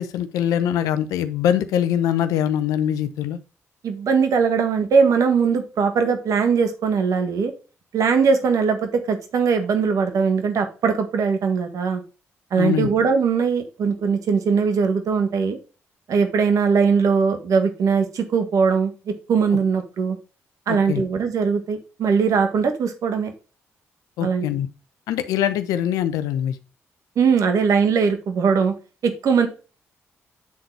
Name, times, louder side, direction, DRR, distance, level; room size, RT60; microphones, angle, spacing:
voice 1, 0.0-3.4 12.6-12.9 20.7-21.0 24.2-24.7 25.1-26.6, left 10 dB, 90° left, 12 dB, 0.6 m, -23 dB
voice 2, 3.8-7.5 7.9-12.0 12.5-15.6 16.1-20.2 20.7-23.3 24.2-24.4 27.2-28.7 29.0-29.5, right 5 dB, 70° right, 7 dB, 1.4 m, -20 dB
8.4 x 4.0 x 4.5 m, 0.35 s
supercardioid pair, 50°, 6 cm